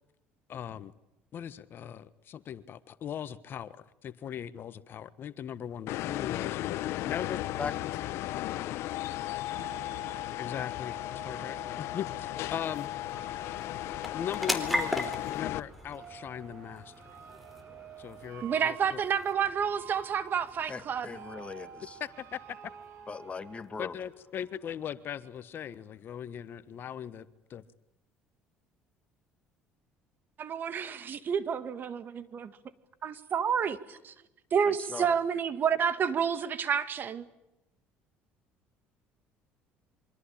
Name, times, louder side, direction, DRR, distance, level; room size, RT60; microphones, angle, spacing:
voice 1, 0.5-0.9 1.3-6.6 7.0-7.7 10.4-12.9 14.1-16.9 18.0-19.0 22.0-22.4 23.8-27.6, left 9 dB, 50° left, 14 dB, 1.4 m, -39 dB
sound 1, 5.9-15.6, left 15 dB, 70° left, 1.2 m, -35 dB
sound 2, 9.2-23.6, right 9 dB, 70° right, 3.5 m, -51 dB
sound 3, 11.0-25.9, left 1 dB, ahead, 4.2 m, -41 dB
voice 2, 18.4-21.1 30.4-32.5 33.0-34.1 34.5-37.3, right 7 dB, 45° right, 13 dB, 2.1 m, -29 dB
voice 3, 20.7-22.0 23.1-23.9 34.9-35.1, left 5 dB, 25° left, 10 dB, 2.3 m, -39 dB
26.5 x 24.5 x 8.8 m, 0.89 s
supercardioid pair, 95°, 5 cm